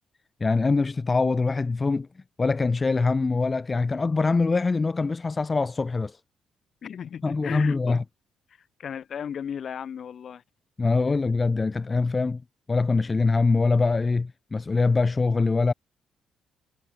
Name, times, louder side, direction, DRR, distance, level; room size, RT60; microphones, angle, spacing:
voice 1, 0.4-2.1 2.4-6.2 7.2-8.0 10.8-12.4 12.7-15.7, left 3 dB, 25° left, 1.0 m, -23 dB
voice 2, 6.8-8.0 8.8-10.4, left 8 dB, 55° left, 1.9 m, -35 dB
cardioid pair, 90°, 0 cm